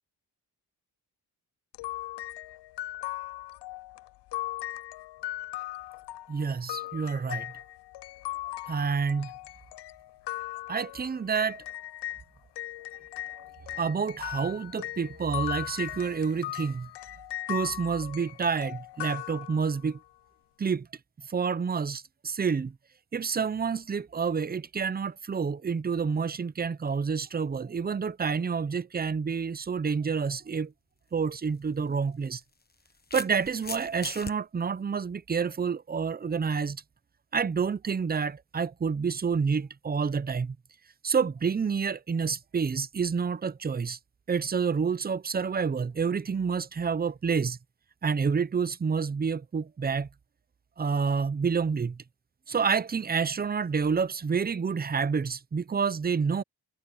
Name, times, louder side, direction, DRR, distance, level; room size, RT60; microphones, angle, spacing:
sound 1, 1.7-12.2 12.6-19.9, left 15 dB, 75° left, 0.5 m, -38 dB
voice 1, 6.3-7.5 8.7-9.3 10.7-11.6 13.4-13.5 13.7-16.9 17.5-20.0 20.6-20.9 21.3-22.8 23.1-30.7 31.1-32.4 33.1-36.8 37.3-40.6 41.0-44.0 44.3-47.6 48.0-50.1 50.8-52.0 52.5-56.4, right 5 dB, 25° right, 0.6 m, -28 dB
sound 2, 31.2-31.3 32.4-34.3, left 4 dB, 25° left, 1.1 m, -39 dB
wide cardioid pair, 115°, 41 cm